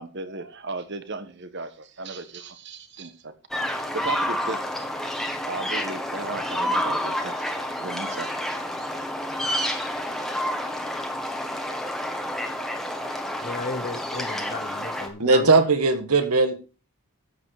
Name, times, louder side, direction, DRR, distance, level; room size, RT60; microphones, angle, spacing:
voice 1, 0.0-3.3 3.7-4.6 5.4-7.5 7.8-8.3, right 3 dB, 50° right, 1.3 m, -36 dB
sound 1, 3.5-15.1, equal, ahead, 1.5 m, -29 dB
voice 2, 13.4-15.6, left 3 dB, 40° left, 0.9 m, -34 dB
voice 3, 15.2-16.5, right 3 dB, 90° right, 1.6 m, -19 dB
12.5 x 8.0 x 4.8 m
head